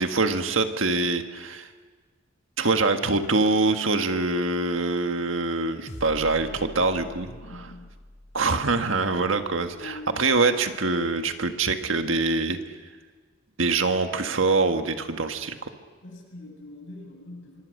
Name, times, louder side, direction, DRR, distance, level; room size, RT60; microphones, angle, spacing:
voice 1, 0.0-1.7 2.6-7.3 8.3-12.6 13.6-15.7, right 3 dB, 75° right, 6 dB, 1.7 m, -24 dB
sound 1, 5.9-10.4, left 1 dB, 40° left, 2.9 m, -45 dB
voice 2, 7.2-7.9 9.7-10.3 16.0-17.6, left 2 dB, 65° left, 1 dB, 7.7 m, -43 dB
26.0 x 23.5 x 6.6 m, 1.5 s
head